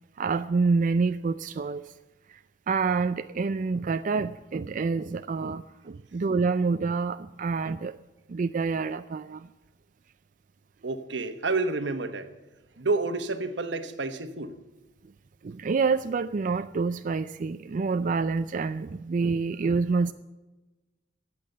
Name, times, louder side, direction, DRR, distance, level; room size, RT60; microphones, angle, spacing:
voice 1, 0.2-1.9 2.3-2.4 2.7-8.0 8.3-9.5 15.4-20.1, right 4 dB, 45° right, 11 dB, 0.4 m, -27 dB
voice 2, 10.8-12.3 12.8-14.5, right 3 dB, 85° right, 9 dB, 1.2 m, -29 dB
14.0 x 8.6 x 7.9 m, 1.1 s
head